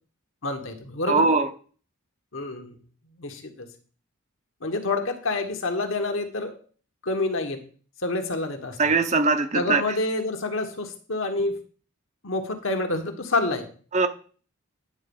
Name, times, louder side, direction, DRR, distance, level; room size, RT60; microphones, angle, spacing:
voice 1, 0.4-1.4 2.3-2.8 3.2-3.7 4.6-6.6 7.0-7.6 8.0-8.8 9.5-11.6 12.2-13.7, left 2 dB, 60° left, 1.4 m, -28 dB
voice 2, 1.1-1.5 8.8-9.8 13.9-14.1, right 4 dB, 30° right, 0.7 m, -21 dB
9.8 x 4.1 x 7.0 m
head